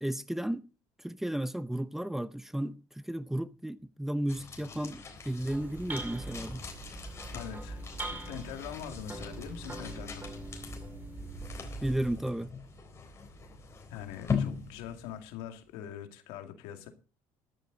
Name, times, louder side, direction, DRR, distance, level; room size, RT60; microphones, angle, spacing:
voice 1, 0.0-0.6 1.0-6.6 11.8-12.5, right 1 dB, 5° right, 0.6 m, -33 dB
sound 1, 4.3-15.6, left 6 dB, 30° left, 3.9 m, -41 dB
sound 2, 5.3-12.3, right 2 dB, 20° right, 5.3 m, -42 dB
voice 2, 7.3-7.8 8.3-10.3 13.9-16.9, left 9 dB, 90° left, 2.3 m, -43 dB
14.0 x 12.5 x 4.0 m
cardioid pair, 115°, 9 cm